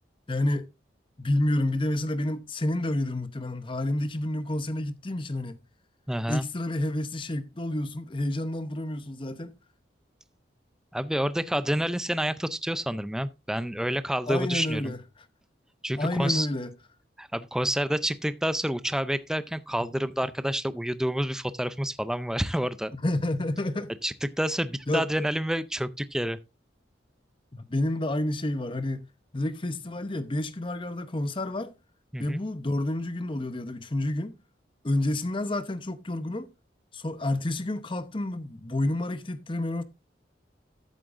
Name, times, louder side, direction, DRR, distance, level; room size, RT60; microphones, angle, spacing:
voice 1, 0.3-0.7 1.2-5.6 6.3-9.6 14.3-15.0 16.0-16.7 22.9-23.9 24.9-25.1 27.5-29.1 29.3-31.7 32.2-34.4 34.8-36.5 36.9-39.8, left 1 dB, 30° left, 0.8 m, -29 dB
voice 2, 6.1-6.4 10.9-14.9 15.8-16.5 17.2-22.9 24.0-26.4 32.1-32.4, equal, 5° right, 0.4 m, -28 dB
13.5 x 7.5 x 2.5 m
head